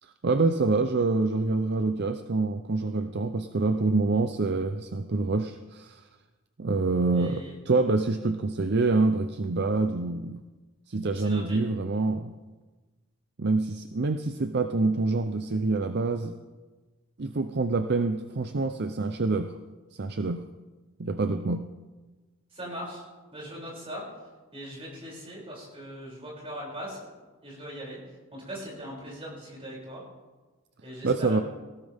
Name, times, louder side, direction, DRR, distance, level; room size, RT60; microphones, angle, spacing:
voice 1, 0.2-6.0 6.6-10.4 10.9-12.3 13.4-16.4 17.2-19.5 20.0-20.4 21.0-21.6 31.0-31.4, right 3 dB, 50° right, 8 dB, 0.6 m, -26 dB
voice 2, 7.1-7.6 11.1-11.6 22.5-23.0 23.3-24.1 24.5-27.1 27.4-30.0 30.8-31.4, equal, 25° right, -5 dB, 6.7 m, -40 dB
19.0 x 16.0 x 3.6 m, 1.3 s
head